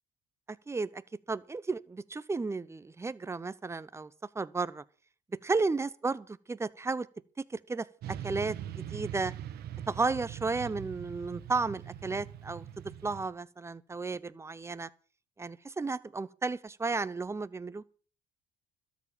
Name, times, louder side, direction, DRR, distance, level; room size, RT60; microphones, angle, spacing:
voice 1, 0.7-1.0 1.3-4.1 4.3-4.8 5.4-7.1 7.4-9.3 9.9-12.6 13.0-14.9 15.4-17.8, right 3 dB, 15° right, 0.8 m, -33 dB
Motorcycle / Traffic noise roadway noise, 8.0-13.3, right 10 dB, 70° right, 1.4 m, -42 dB
13.0 x 7.3 x 9.0 m
cardioid pair, 110°, 17 cm